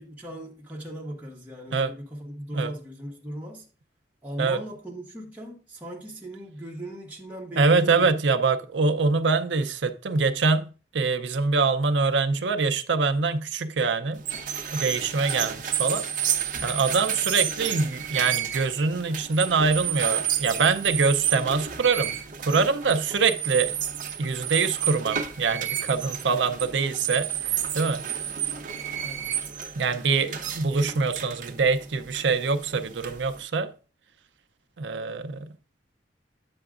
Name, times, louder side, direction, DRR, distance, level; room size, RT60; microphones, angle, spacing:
voice 1, 0.0-3.7 4.2-8.1 29.0-29.3, equal, 10° right, 1.3 m, -38 dB
voice 2, 7.6-14.2 14.7-16.1 16.6-23.7 24.2-28.0 29.8-33.7 34.8-35.5, right 4 dB, 85° right, 0.6 m, -24 dB
sound 1, 14.2-33.4, right 9 dB, 45° right, 0.8 m, -31 dB
8.6 x 6.9 x 2.4 m
head